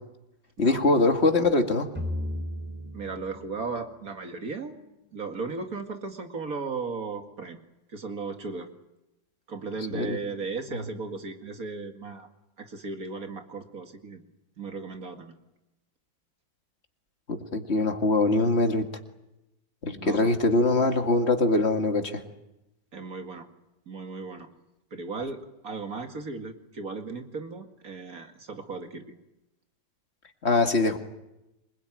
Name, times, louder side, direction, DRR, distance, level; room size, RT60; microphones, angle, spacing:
voice 1, 0.6-1.9 9.9-10.2 17.3-18.9 19.8-22.2 30.4-31.0, left 2 dB, 35° left, 5 dB, 2.3 m, -23 dB
sound 1, 2.0-5.2, left 1 dB, 5° right, 4.6 m, -36 dB
voice 2, 2.9-4.7 5.1-7.6 7.9-8.7 9.5-12.3 12.6-14.2 14.6-15.3 20.0-20.3 22.9-23.5 23.9-24.5 24.9-29.1, right 4 dB, 50° right, 6 dB, 2.5 m, -36 dB
27.0 x 21.5 x 9.3 m, 0.94 s
omnidirectional pair, 2.0 m